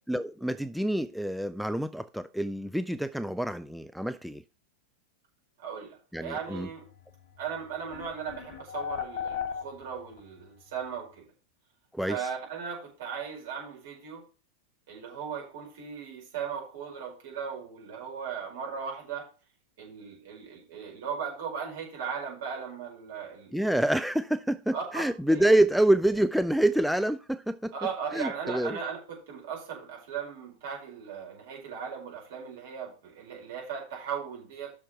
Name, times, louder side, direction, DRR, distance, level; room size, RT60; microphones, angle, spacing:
voice 1, 0.1-4.4 6.1-6.7 11.9-12.2 23.5-27.7 28.1-28.8, right 1 dB, ahead, 0.4 m, -27 dB
voice 2, 5.6-6.8 7.4-11.3 12.1-14.2 14.9-19.3 19.8-23.7 24.7-25.0 25.3-25.6 27.7-34.7, right 6 dB, 55° right, 5.0 m, -37 dB
sound 1, 7.4-7.5 7.9-10.2, left 7 dB, 45° left, 1.4 m, -35 dB
7.5 x 6.4 x 5.7 m
figure-of-eight pair, 90°, 0 cm